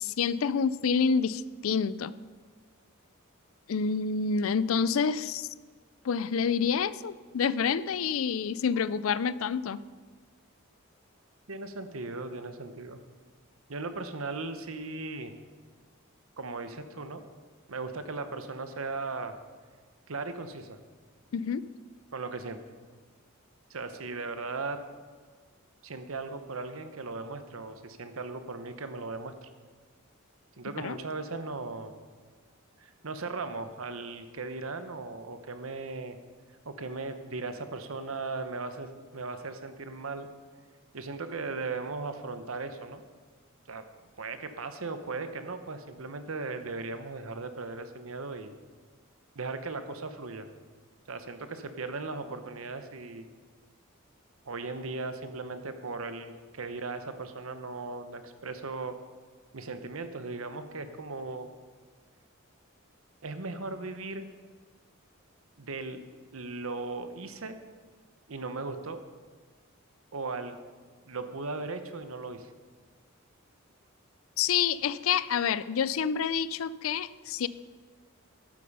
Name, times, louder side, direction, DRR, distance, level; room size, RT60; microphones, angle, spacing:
voice 1, 0.0-2.1 3.7-5.5 6.0-9.8 21.3-21.7 30.8-31.0 74.4-77.5, left 6 dB, 70° left, 17 dB, 0.4 m, -28 dB
voice 2, 11.5-13.0 13.7-15.3 16.4-17.2 17.7-19.3 20.1-20.8 22.1-22.6 23.7-24.8 25.8-29.5 30.6-31.9 32.8-36.2 36.6-40.3 40.9-43.0 43.7-43.8 44.2-48.5 49.3-50.5 51.1-53.3 54.4-59.0 59.5-61.5 63.2-64.2 65.6-66.0 66.3-67.6 68.3-69.0 70.1-70.5 71.1-72.5, right 3 dB, 75° right, 9 dB, 1.0 m, -37 dB
12.0 x 8.5 x 5.5 m, 1.5 s
head